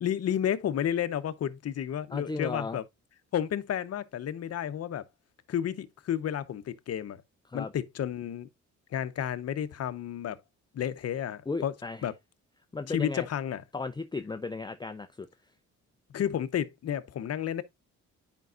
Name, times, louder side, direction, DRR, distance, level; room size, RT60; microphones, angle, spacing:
voice 1, 0.0-2.8 3.3-5.0 5.5-7.2 7.5-8.5 8.9-10.4 10.7-11.7 12.0-12.1 12.9-13.6 16.1-17.6, left 9 dB, 55° left, 0.8 m, -31 dB
voice 2, 2.1-2.8 7.5-7.7 11.5-12.1 12.7-13.3 13.7-15.3, left 3 dB, 15° left, 0.5 m, -35 dB
9.1 x 5.3 x 2.4 m
cardioid pair, 90°, 30 cm